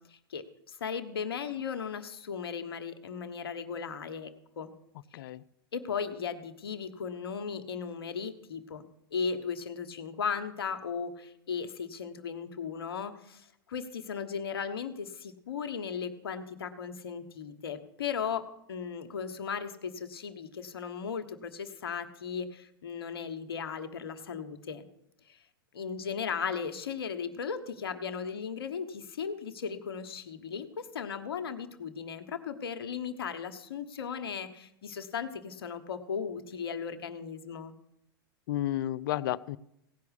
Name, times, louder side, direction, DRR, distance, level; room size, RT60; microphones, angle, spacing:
voice 1, 0.1-4.7 5.7-8.8 9.1-24.8 25.3-25.4 25.7-37.7, left 6 dB, 80° left, 9 dB, 1.3 m, -36 dB
voice 2, 5.1-5.4 38.5-39.6, left 13 dB, 65° left, 18 dB, 0.5 m, -31 dB
17.0 x 5.8 x 8.2 m, 0.79 s
hypercardioid pair, 105°, 12 cm